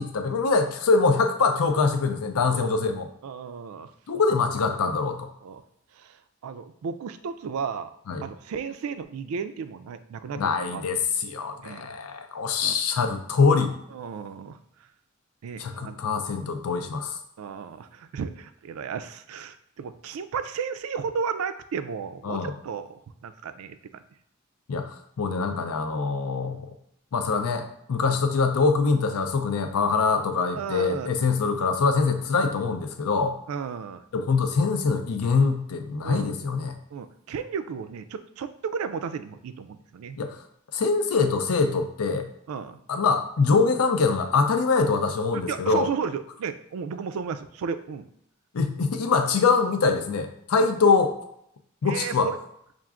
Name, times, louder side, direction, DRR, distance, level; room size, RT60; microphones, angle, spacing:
voice 1, 0.0-3.1 4.1-5.3 8.1-8.2 10.4-13.8 15.6-17.2 22.2-22.5 24.7-26.7 27.1-33.4 34.1-36.7 40.2-40.4 40.7-42.3 42.9-45.9 48.5-51.2 51.8-52.3, left 4 dB, 80° left, 7 dB, 0.5 m, -24 dB
voice 2, 3.2-3.9 5.4-5.6 5.9-7.9 8.2-10.8 11.6-11.9 12.6-12.8 13.9-14.6 15.4-16.0 17.4-24.0 28.0-28.2 30.6-31.1 33.5-34.0 36.0-36.3 36.9-40.2 42.5-42.8 45.5-48.1 51.9-52.4, right 6 dB, 70° right, 11 dB, 0.3 m, -34 dB
5.7 x 2.5 x 2.4 m, 0.73 s
head